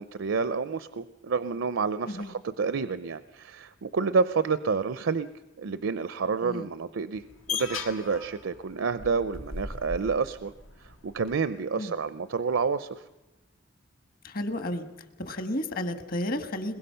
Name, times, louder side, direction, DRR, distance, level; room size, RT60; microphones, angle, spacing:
voice 1, 0.0-5.3 5.6-10.5 10.8-13.0, right 5 dB, 75° right, 13 dB, 0.6 m, -29 dB
sound 1, 7.2-11.3, left 5 dB, 90° left, 1.8 m, -38 dB
voice 2, 14.2-14.9 15.2-16.8, left 1 dB, 45° left, 9 dB, 1.4 m, -32 dB
22.0 x 21.5 x 5.7 m, 1.1 s
head